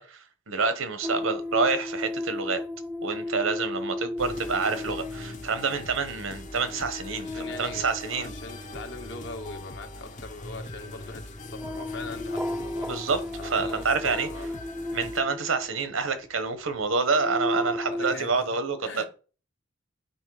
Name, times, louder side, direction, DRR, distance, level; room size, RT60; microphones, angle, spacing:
voice 1, 0.0-2.6 3.0-7.3 7.6-8.3 12.9-14.3 14.9-19.1, right 4 dB, 80° right, 1.1 m, -28 dB
sound 1, 1.0-16.1 16.8-18.1, left 1 dB, 5° right, 0.5 m, -35 dB
sound 2, 4.2-15.2, left 1 dB, 40° left, 0.8 m, -42 dB
voice 2, 7.2-13.0 13.4-14.5 17.5-19.1, left 3 dB, 60° left, 1.3 m, -42 dB
8.2 x 4.2 x 4.8 m
head